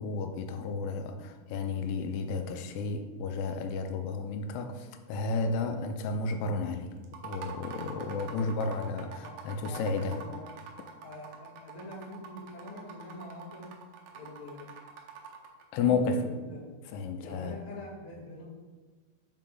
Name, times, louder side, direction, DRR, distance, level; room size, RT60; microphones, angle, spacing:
voice 1, 0.0-6.9 7.2-10.2 15.7-16.2 16.9-17.6, left 4 dB, 85° left, 6 dB, 2.8 m, -32 dB
sound 1, 7.0-15.6, right 7 dB, 85° right, 2.0 m, -45 dB
voice 2, 9.2-10.5 11.0-13.7 14.1-14.7 15.7-16.7 17.2-18.4, left 1 dB, 45° left, -7 dB, 1.7 m, -45 dB
5.8 x 5.0 x 3.7 m, 1.4 s
omnidirectional pair, 5.1 m